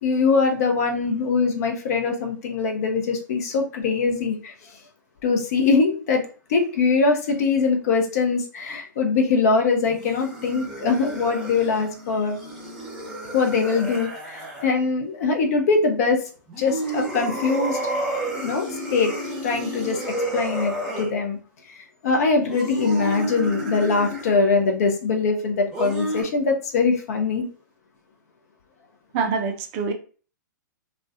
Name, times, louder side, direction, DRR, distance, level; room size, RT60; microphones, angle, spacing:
voice 1, 0.0-4.5 5.2-12.4 13.3-16.3 16.6-17.8 18.2-19.1 19.4-21.4 22.0-27.5, left 4 dB, 50° left, 3 dB, 0.6 m, -22 dB
sound 1, 9.8-14.7 16.5-21.1 22.5-24.4 25.7-26.2, right 1 dB, 5° right, 0.9 m, -31 dB
voice 2, 29.1-29.9, right 5 dB, 35° right, 6 dB, 0.4 m, -25 dB
2.4 x 2.2 x 2.4 m, 0.38 s
figure-of-eight pair, 115°, 11 cm